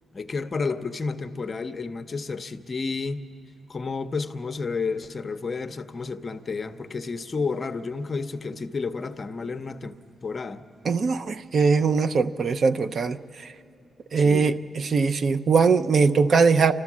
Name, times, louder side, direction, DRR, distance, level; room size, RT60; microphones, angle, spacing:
voice 1, 0.1-3.2 3.7-10.0 10.2-10.6 14.2-14.6, left 4 dB, 35° left, 10 dB, 0.6 m, -31 dB
voice 2, 10.9-13.2 14.1-14.5 14.8-16.7, right 5 dB, 50° right, 10 dB, 0.5 m, -20 dB
29.0 x 13.0 x 7.3 m, 2.5 s
wide cardioid pair, 130°, 0 cm